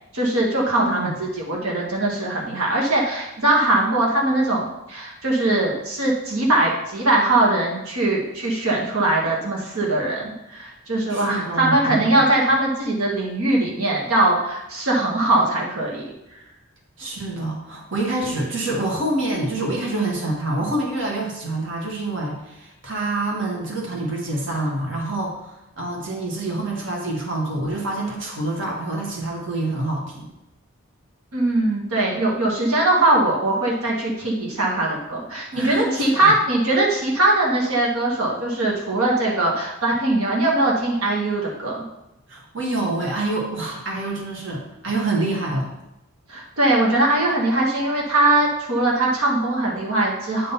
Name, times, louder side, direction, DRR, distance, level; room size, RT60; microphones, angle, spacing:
voice 1, 0.1-16.1 31.3-41.8 46.3-50.5, right 2 dB, 85° right, -3 dB, 1.6 m, -21 dB
voice 2, 0.8-1.1 11.1-12.2 17.0-30.3 35.5-36.3 42.3-45.7, right 2 dB, 60° right, -2 dB, 1.7 m, -26 dB
9.7 x 3.9 x 5.6 m, 0.91 s
head